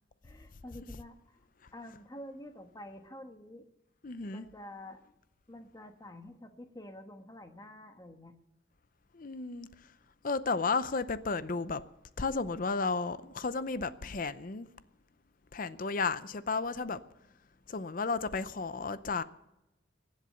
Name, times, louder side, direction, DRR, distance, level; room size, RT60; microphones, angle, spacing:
voice 1, 0.2-1.4 1.7-3.7 4.3-5.0 5.5-8.3, left 1 dB, 20° left, 1.3 m, -48 dB
voice 2, 4.0-4.5 9.1-9.7 10.2-11.8 12.2-14.7 15.5-17.0 17.7-19.2, left 4 dB, 45° left, 0.6 m, -33 dB
22.0 x 8.0 x 6.7 m
head